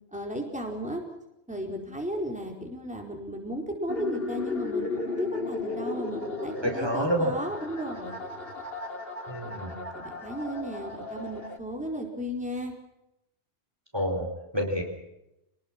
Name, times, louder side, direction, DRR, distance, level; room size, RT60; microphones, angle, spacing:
voice 1, 0.1-1.0 1.5-8.2 9.4-12.7, equal, 5° right, 1 dB, 4.5 m, -35 dB
sound 1, 3.9-11.6, left 3 dB, 60° left, 2.9 m, -35 dB
voice 2, 6.6-7.3 9.3-9.7 13.9-14.8, equal, 20° right, 2 dB, 4.5 m, -28 dB
28.0 x 20.0 x 6.1 m, 0.89 s
omnidirectional pair, 1.1 m